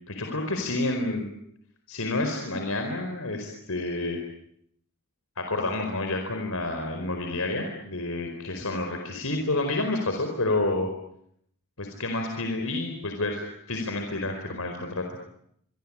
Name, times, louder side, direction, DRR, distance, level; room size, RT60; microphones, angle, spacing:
voice 1, 0.1-1.3 1.9-4.2 5.4-10.9 11.8-15.0, left 2 dB, 80° left, 4 dB, 4.7 m, -29 dB
26.0 x 25.0 x 8.8 m, 0.73 s
head